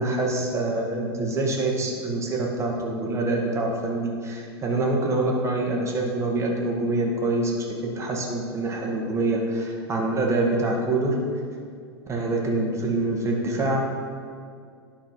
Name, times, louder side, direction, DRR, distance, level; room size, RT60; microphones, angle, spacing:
voice 1, 0.0-11.2 12.1-13.8, right 2 dB, 20° right, -1 dB, 1.6 m, -25 dB
11.0 x 4.3 x 4.5 m, 2.2 s
hypercardioid pair, 110°, 14 cm